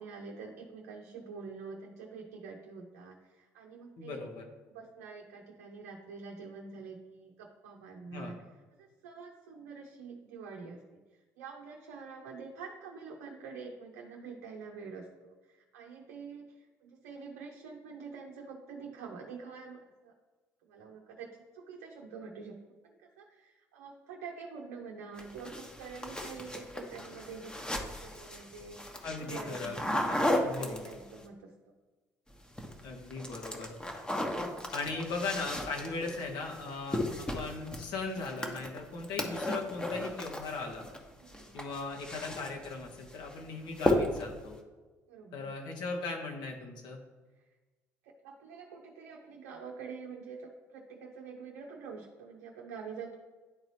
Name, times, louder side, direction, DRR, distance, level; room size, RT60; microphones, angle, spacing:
voice 1, 0.0-4.3 4.7-8.5 8.8-10.8 11.4-20.1 20.6-22.6 22.8-31.3 41.2-41.5 45.1-45.5 48.0-53.1, right 5 dB, 70° right, 0 dB, 0.7 m, -46 dB
voice 2, 4.0-4.4 8.1-8.3 29.0-29.8 30.0-30.8 32.8-33.7 34.7-40.9 41.5-44.6 45.3-47.0, left 3 dB, 60° left, 1 dB, 1.4 m, -38 dB
sound 1, 25.2-31.2 32.3-32.8 33.1-41.0 41.3-42.7 43.1-43.4 43.8-44.4, left 1 dB, 10° left, 1.1 m, -35 dB
10.5 x 3.9 x 3.2 m, 1.3 s
figure-of-eight pair, 55°, 8 cm